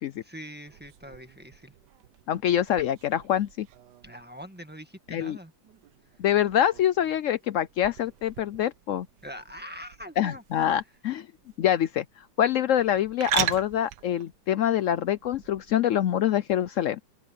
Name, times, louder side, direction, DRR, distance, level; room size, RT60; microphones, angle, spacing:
voice 1, 0.3-1.7 4.0-5.5 9.2-10.4, equal, 5° right, 1.5 m, -43 dB
sound 1, 0.7-15.7, right 11 dB, 70° right, 1.4 m, -39 dB
voice 2, 2.3-3.7 5.1-5.4 6.2-9.1 10.2-11.3 11.6-17.1, left 11 dB, 90° left, 0.6 m, -25 dB
open air
omnidirectional pair, 2.0 m